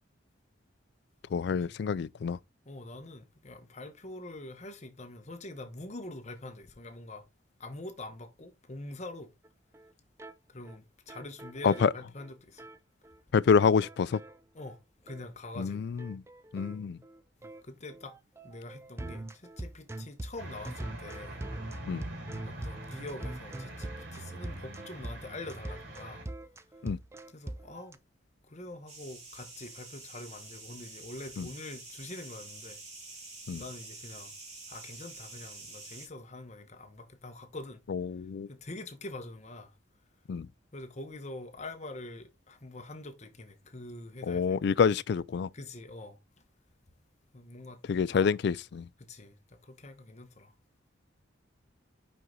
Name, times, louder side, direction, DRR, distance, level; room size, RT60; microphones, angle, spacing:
voice 1, 1.3-2.4 11.6-11.9 13.3-14.2 15.6-16.2 16.5-17.0 21.9-22.0 26.8-27.0 31.4-31.5 33.5-33.6 37.9-38.5 40.3-40.5 44.2-45.5 47.9-48.9, left 6 dB, 60° left, 0.3 m, -27 dB
voice 2, 2.7-7.2 7.6-9.3 10.5-12.7 14.5-14.8 15.0-15.9 17.4-18.2 18.4-21.4 22.4-26.3 27.3-28.0 28.5-32.8 33.5-34.3 34.7-37.8 38.5-39.7 40.7-44.7 45.5-46.2 47.3-47.8 48.1-48.4 49.0-50.5, left 2 dB, 35° left, 0.9 m, -45 dB
sound 1, 9.4-9.5 9.7-9.9 10.2-10.3 10.6-10.8 11.1-12.8 13.0-13.2 13.5-14.8 15.1-15.2 15.5-15.7 16.0-27.9, right 1 dB, 15° right, 0.4 m, -43 dB
sound 2, 20.4-26.2, right 1 dB, 85° right, 3.8 m, -44 dB
sound 3, 28.9-36.1, right 3 dB, 35° right, 2.3 m, -47 dB
5.5 x 5.4 x 3.7 m
head